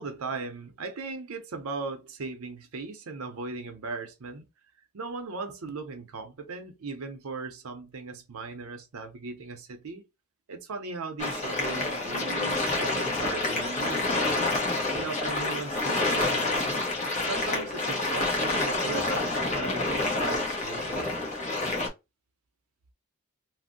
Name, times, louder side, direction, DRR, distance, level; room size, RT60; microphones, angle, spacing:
voice 1, 0.0-4.5 4.9-10.0 10.5-14.5 14.9-16.8 17.2-21.1, right 4 dB, 75° right, 0.6 m, -38 dB
sound 1, 11.2-21.9, left 2 dB, 30° left, 0.7 m, -28 dB
2.5 x 2.0 x 3.6 m
head